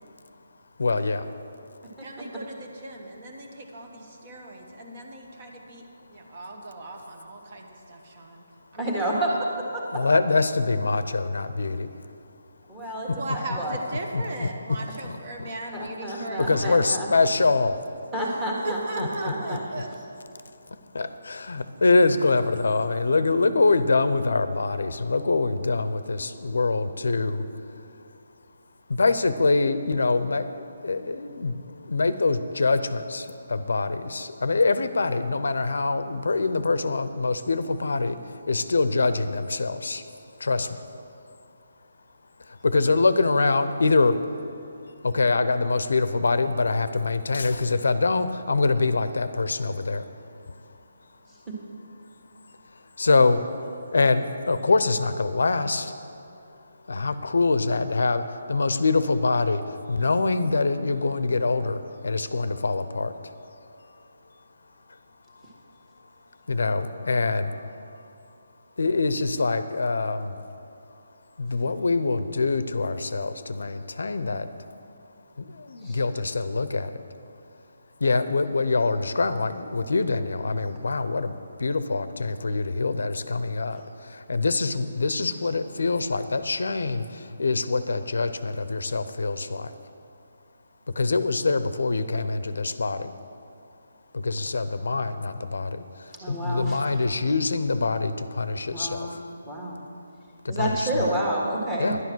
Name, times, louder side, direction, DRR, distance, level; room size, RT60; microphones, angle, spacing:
voice 1, 0.8-1.3 9.9-11.9 13.1-13.2 14.1-14.5 15.0-15.5 16.1-17.8 19.0-19.1 19.5-19.6 20.7-27.5 28.9-40.0 40.4-40.8 42.4-44.2 45.0-50.1 52.7-53.7 53.9-55.9 56.9-63.3 63.8-64.0 66.5-68.1 68.8-70.4 71.4-74.5 75.4-77.0 78.0-89.8 90.9-93.1 94.1-99.2 100.4-101.1 101.8-102.0, left 3 dB, 80° left, 12 dB, 0.6 m, -25 dB
voice 2, 2.0-5.8 6.1-8.4 8.7-9.4 13.1-16.8 18.1-18.4 18.6-19.9, right 2 dB, 35° right, 2 dB, 1.2 m, -38 dB
voice 3, 8.8-9.3 9.7-9.8 12.7-13.8 15.7-17.1 18.1-19.6 75.8-76.0 96.2-96.8 98.7-99.1 99.4-99.8 100.5-101.9, right 1 dB, 10° right, -3 dB, 1.6 m, -29 dB
11.0 x 9.5 x 6.2 m, 2.6 s
hypercardioid pair, 170°, 0 cm